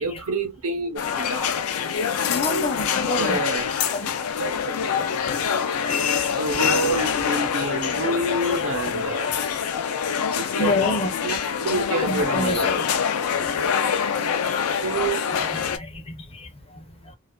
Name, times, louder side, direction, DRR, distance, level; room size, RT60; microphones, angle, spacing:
voice 1, 0.0-1.6 3.2-3.7 4.2-4.7 6.1-9.4 10.3-10.7 11.2-13.4 14.8-15.2, right 2 dB, 75° right, 0.8 m, -28 dB
sound 1, 1.0-15.8, left 7 dB, 80° left, 0.4 m, -25 dB
voice 2, 2.3-3.4 3.9-4.1 5.0-5.3 5.7-6.2 6.6-6.7 7.0-7.1 8.0-8.1 8.4-9.6 10.6-11.3 12.0-12.8 14.5-14.6 15.3-17.1, left 2 dB, 25° left, 0.5 m, -30 dB
2.4 x 2.3 x 2.2 m
head